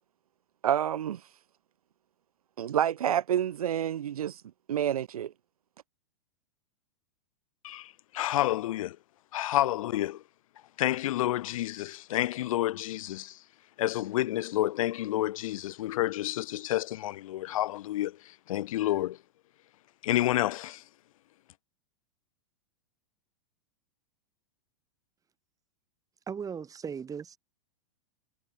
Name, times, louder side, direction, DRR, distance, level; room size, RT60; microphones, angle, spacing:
voice 1, 0.6-1.2 2.6-4.4 4.7-5.3, right 10 dB, 85° right, 2.1 m, -28 dB
voice 2, 7.6-9.0 9.3-10.2 10.8-13.4 13.8-18.2 18.5-19.2 20.0-20.8, left 15 dB, 70° left, 2.8 m, -29 dB
voice 3, 26.3-27.4, right 7 dB, 20° right, 5.6 m, -37 dB
hypercardioid pair, 125°, 18 cm